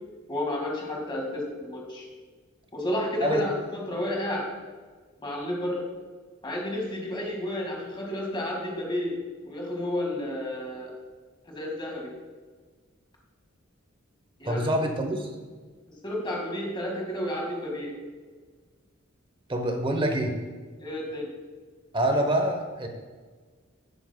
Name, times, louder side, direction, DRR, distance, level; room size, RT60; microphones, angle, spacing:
voice 1, 0.3-2.0 2.7-4.5 5.2-5.8 6.4-9.1 9.4-10.9 11.5-12.1 14.4-14.7 16.0-17.9 20.8-21.3, left 1 dB, 25° left, -1 dB, 1.8 m, -31 dB
voice 2, 14.5-15.3 19.5-20.4 21.9-22.9, right 1 dB, 25° right, 5 dB, 0.8 m, -26 dB
10.5 x 8.4 x 2.2 m, 1.4 s
head